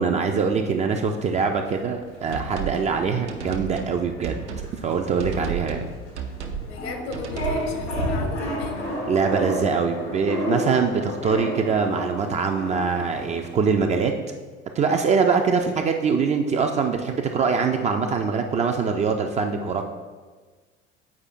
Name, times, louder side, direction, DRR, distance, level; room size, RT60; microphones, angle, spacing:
voice 1, 0.0-4.4 4.8-5.9 9.1-14.1 14.8-19.8, right 5 dB, 20° right, 4 dB, 0.3 m, -23 dB
sound 1, 1.3-13.5, left 1 dB, 90° left, 1.1 m, -32 dB
sound 2, 2.3-2.8 3.3-4.0 4.2-4.7 5.2-5.9 6.2-6.6 7.1-7.6, right 6 dB, 75° right, 0.6 m, -32 dB
voice 2, 6.6-8.9, left 4 dB, 65° left, 4 dB, 1.0 m, -36 dB
8.3 x 4.8 x 2.5 m, 1.4 s
figure-of-eight pair, 65°, 34 cm